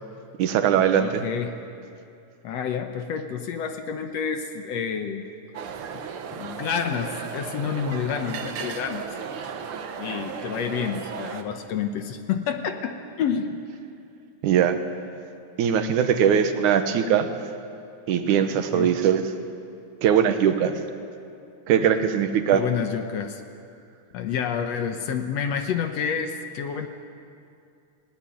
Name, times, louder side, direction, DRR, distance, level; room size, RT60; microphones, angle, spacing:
voice 1, 0.4-1.2 14.4-14.8 15.6-17.3 18.1-19.2 20.0-20.7 21.7-22.6, right 8 dB, 75° right, 8 dB, 2.5 m, -20 dB
voice 2, 1.0-1.6 2.4-5.3 5.9-6.0 6.3-9.1 10.0-13.6 18.7-18.9 22.5-23.4 24.1-26.9, left 7 dB, 70° left, 6 dB, 1.9 m, -29 dB
sound 1, 5.5-11.4, right 6 dB, 60° right, 1.5 m, -35 dB
19.0 x 18.5 x 9.2 m, 2.5 s
omnidirectional pair, 3.5 m